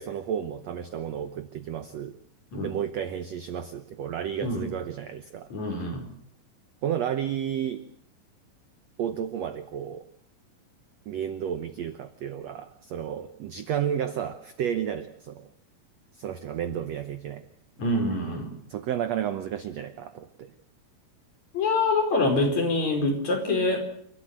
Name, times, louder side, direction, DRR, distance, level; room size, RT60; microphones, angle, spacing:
voice 1, 0.0-2.1 2.6-5.5 6.8-7.8 9.0-10.0 11.1-15.5 16.2-17.4 18.7-20.5, right 9 dB, 80° right, 11 dB, 1.5 m, -32 dB
voice 2, 5.5-6.1 17.8-18.6 21.5-23.8, left 2 dB, 45° left, 2 dB, 5.8 m, -25 dB
29.0 x 13.0 x 7.7 m, 0.66 s
omnidirectional pair, 4.4 m